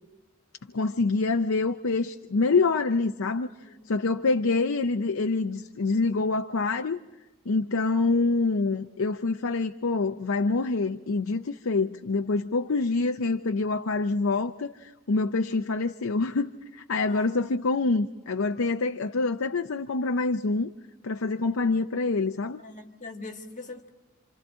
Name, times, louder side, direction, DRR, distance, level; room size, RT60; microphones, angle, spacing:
voice 1, 0.7-3.5 3.9-7.0 7.5-20.7 21.0-22.6, left 3 dB, 75° left, 0.6 m, -26 dB
voice 2, 3.6-3.9 17.0-17.4 22.6-23.9, left 3 dB, 35° left, 1.5 m, -42 dB
29.0 x 26.5 x 3.8 m
head